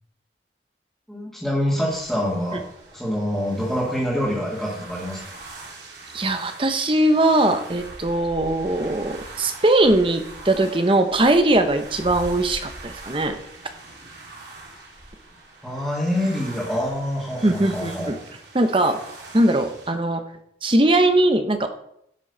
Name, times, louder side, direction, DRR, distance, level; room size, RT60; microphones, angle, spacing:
voice 1, 1.1-2.6 2.9-5.2 15.6-18.1, equal, ahead, -7 dB, 2.4 m, -25 dB
sound 1, 1.9-19.9, right 2 dB, 75° right, 2.7 m, -42 dB
voice 2, 6.1-13.4 17.4-18.2 18.5-19.0 19.3-20.2 20.6-21.7, right 1 dB, 30° right, 7 dB, 0.9 m, -20 dB
12.0 x 6.2 x 5.5 m, 0.73 s
head